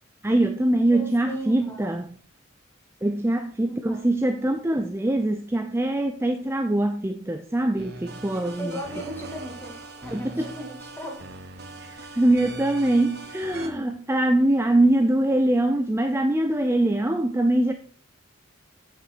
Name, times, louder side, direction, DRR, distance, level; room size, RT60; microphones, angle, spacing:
voice 1, 0.2-2.1 3.0-8.8 10.1-10.5 11.8-17.7, right 1 dB, 10° right, 0.5 m, -23 dB
voice 2, 0.9-1.9 3.7-4.0 8.6-11.2, equal, 10° left, 2.2 m, -37 dB
sound 1, 7.8-13.7, right 2 dB, 55° right, 1.4 m, -41 dB
8.5 x 6.9 x 4.6 m
head